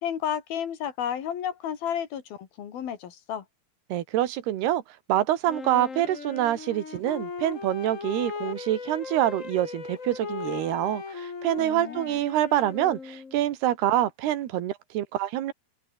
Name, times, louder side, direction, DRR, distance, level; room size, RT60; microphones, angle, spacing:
voice 1, 0.0-3.4 11.6-12.2, left 9 dB, 70° left, 4.2 m, -32 dB
voice 2, 3.9-4.8 5.1-15.5, right 13 dB, 85° right, 3.6 m, -26 dB
Wind instrument woodwind instrument, 5.5-13.5, left 5 dB, 30° left, 1.4 m, -37 dB
open air
omnidirectional pair, 4.5 m